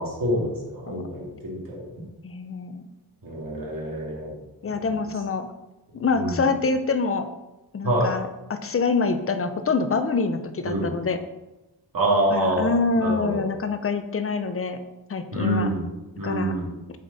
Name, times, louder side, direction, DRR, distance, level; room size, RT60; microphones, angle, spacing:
voice 1, 0.0-1.9 3.2-4.3 4.7-4.8 6.2-6.4 7.8-8.1 10.6-10.9 11.9-13.4 15.3-15.9 16.2-16.7, right 1 dB, 55° right, -3 dB, 2.2 m, -26 dB
voice 2, 2.2-2.9 4.6-5.5 5.9-7.3 7.7-11.2 12.3-14.8 15.1-15.7 16.2-16.5, left 4 dB, 35° left, 9 dB, 0.6 m, -25 dB
7.3 x 5.2 x 4.1 m, 1.0 s
wide cardioid pair, 150°, 39 cm